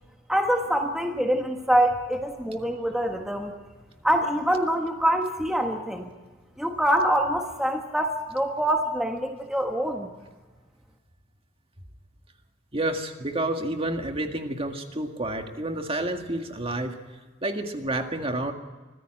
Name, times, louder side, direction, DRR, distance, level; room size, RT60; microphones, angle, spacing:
voice 1, 0.3-3.5 4.0-6.1 6.6-10.1, equal, 5° right, 3 dB, 1.3 m, -25 dB
voice 2, 12.7-16.9 17.4-18.5, right 1 dB, 30° right, 5 dB, 1.9 m, -29 dB
24.5 x 15.5 x 7.8 m, 1.3 s
head